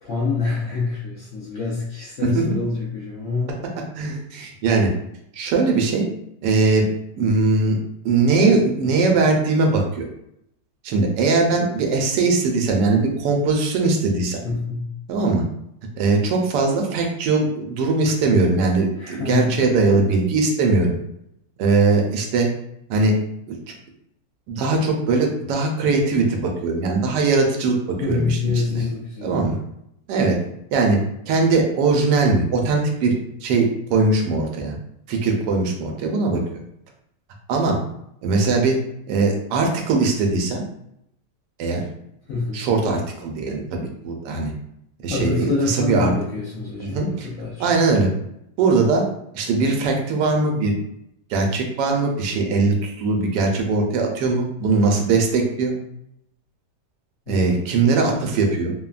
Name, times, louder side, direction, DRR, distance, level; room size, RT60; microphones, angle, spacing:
voice 1, 0.0-3.5 14.4-14.9 19.0-19.6 28.0-29.6 42.3-42.7 45.1-47.8 57.3-57.6, left 4 dB, 65° left, -6 dB, 0.8 m, -26 dB
voice 2, 4.0-4.9 5.3-6.0 6.4-6.9 7.2-7.8 8.0-10.0 10.8-14.4 15.1-15.4 16.0-21.0 21.6-22.5 22.9-23.2 23.5-23.6 24.5-28.4 29.2-29.6 30.1-30.4 30.7-31.0 31.3-33.1 33.4-34.7 35.1-36.4 37.5-37.8 38.2-38.8 39.1-40.6 41.6-41.8 42.5-44.5 45.0-46.1 46.8-47.3 47.6-48.1 48.6-49.0 49.3-50.7 51.3-55.7 57.3-58.7, right 3 dB, 85° right, 2 dB, 1.2 m, -20 dB
3.2 x 2.1 x 2.3 m, 0.76 s
omnidirectional pair, 1.8 m